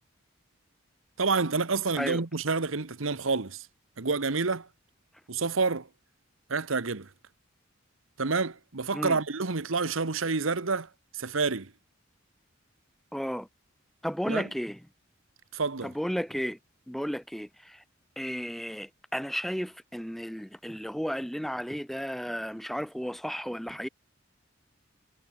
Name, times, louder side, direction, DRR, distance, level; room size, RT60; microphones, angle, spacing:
voice 1, 1.2-3.7 4.0-4.7 5.3-5.9 6.5-7.1 8.2-10.9 11.1-11.7 14.3-14.4 15.5-15.9, right 4 dB, 90° right, 1.3 m, -28 dB
voice 2, 13.1-13.5 14.0-14.8 15.8-16.6 16.9-17.8 18.2-23.9, equal, ahead, 0.6 m, -33 dB
head